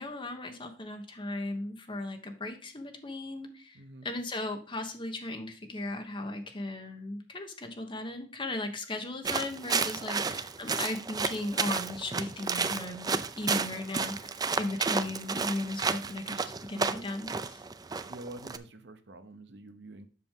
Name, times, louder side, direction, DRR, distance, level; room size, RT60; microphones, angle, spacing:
voice 1, 0.0-16.4 16.7-17.6, left 2 dB, 30° left, 5 dB, 1.3 m, -37 dB
voice 2, 3.7-4.1 10.0-10.4 14.8-15.4 16.0-16.1 18.1-20.1, right 2 dB, 70° right, 9 dB, 0.9 m, -48 dB
sound 1, 9.2-18.6, right 4 dB, 20° right, 0.4 m, -32 dB
7.8 x 6.0 x 3.7 m, 0.39 s
head